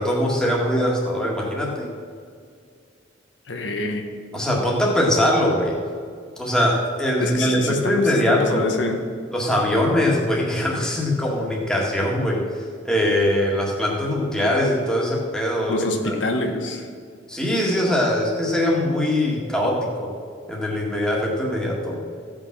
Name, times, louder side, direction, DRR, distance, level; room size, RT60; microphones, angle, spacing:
voice 1, 0.0-1.9 4.3-5.8 6.4-8.7 9.3-16.1 17.3-20.1 20.5-22.0, left 1 dB, 5° left, -3 dB, 1.9 m, -22 dB
voice 2, 3.5-4.1 7.2-9.0 15.7-16.9, left 2 dB, 80° left, 4 dB, 1.3 m, -26 dB
15.0 x 6.2 x 6.0 m, 2.2 s
head